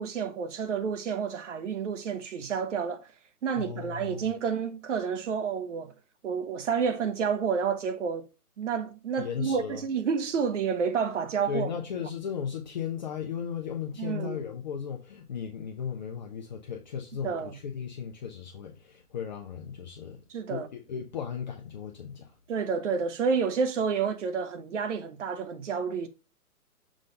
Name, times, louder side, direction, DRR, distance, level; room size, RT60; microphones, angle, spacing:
voice 1, 0.0-3.1 3.4-5.9 6.2-8.3 8.6-11.7 14.0-14.4 17.2-17.5 20.3-20.7 22.5-26.1, right 6 dB, 50° right, 1.1 m, -29 dB
voice 2, 3.6-4.3 9.2-9.8 11.5-20.2 20.5-22.4, left 7 dB, 30° left, 0.7 m, -36 dB
6.3 x 3.3 x 5.1 m
hypercardioid pair, 150°, 45 cm